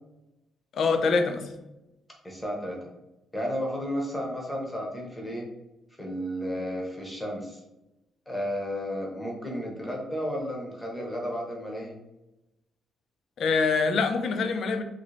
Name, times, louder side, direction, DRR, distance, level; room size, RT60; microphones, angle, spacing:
voice 1, 0.7-1.5 13.4-14.8, left 4 dB, 50° left, 7 dB, 0.4 m, -24 dB
voice 2, 2.2-2.8 3.3-5.4 6.0-7.6 8.3-12.0, equal, 5° left, -1 dB, 0.7 m, -33 dB
3.0 x 2.6 x 3.1 m, 0.95 s
cardioid pair, 180°, 0 cm